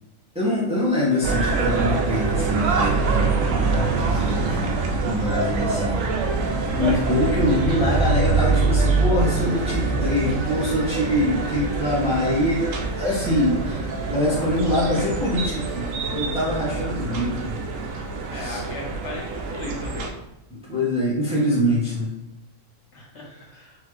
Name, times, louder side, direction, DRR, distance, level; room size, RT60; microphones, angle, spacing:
voice 1, 0.3-4.7 5.0-6.0 6.7-12.7 13.0-17.6 18.3-18.6 20.5-22.1 23.3-23.4, left 1 dB, 5° right, -8 dB, 1.4 m, -24 dB
sound 1, 1.2-20.1, right 3 dB, 90° right, 1.0 m, -24 dB
voice 2, 18.3-20.1 22.9-23.8, left 2 dB, 65° left, -2 dB, 1.4 m, -37 dB
4.5 x 3.2 x 3.2 m, 0.93 s
omnidirectional pair, 1.3 m